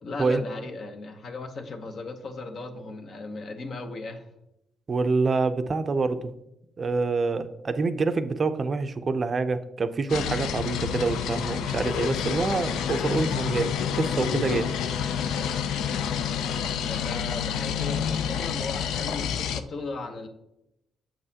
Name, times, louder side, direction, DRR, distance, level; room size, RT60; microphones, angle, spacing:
voice 1, 0.0-4.3 15.2-15.6 16.1-20.3, left 3 dB, 55° left, 6 dB, 0.9 m, -37 dB
voice 2, 4.9-6.3 6.8-14.7, right 4 dB, 40° right, 10 dB, 0.4 m, -26 dB
sound 1, 10.1-19.6, left 8 dB, 85° left, 0.4 m, -28 dB
7.1 x 5.4 x 2.8 m, 0.84 s
cardioid pair, 90°, 0 cm